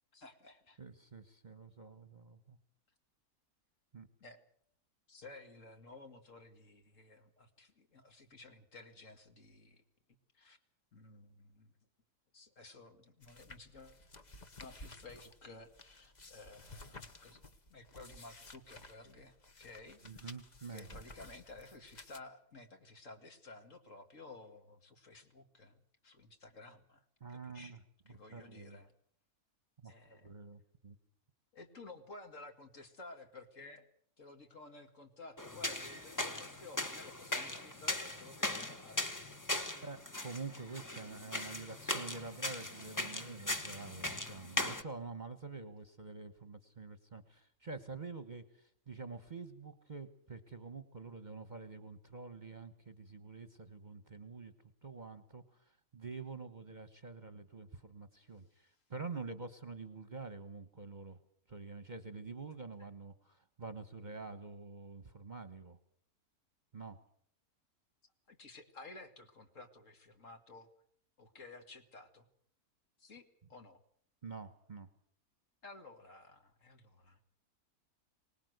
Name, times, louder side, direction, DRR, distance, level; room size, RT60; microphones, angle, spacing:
voice 1, 0.1-0.8 4.2-4.4 5.1-9.8 10.3-10.6 10.9-11.7 12.3-14.0 14.6-17.4 17.7-20.2 20.7-25.7 26.0-27.0 27.3-27.8 28.1-28.9 29.8-30.3 31.5-33.9 34.2-39.1 39.5-39.7 68.3-70.7 71.2-72.3 73.0-73.8 75.6-77.2, left 3 dB, 55° left, 5 dB, 2.6 m, -54 dB
voice 2, 0.8-2.6 3.9-4.1 20.0-21.0 27.2-27.8 28.1-28.8 29.8-31.0 39.8-54.5 54.8-61.2 61.5-65.8 66.7-67.0 74.2-74.9, right 4 dB, 30° right, 11 dB, 1.3 m, -47 dB
sound 1, 13.2-22.2, left 2 dB, 30° left, 1.3 m, -55 dB
sound 2, 35.4-44.8, left 1 dB, 15° left, 1.1 m, -39 dB
24.5 x 19.5 x 8.0 m, 0.62 s
omnidirectional pair, 1.6 m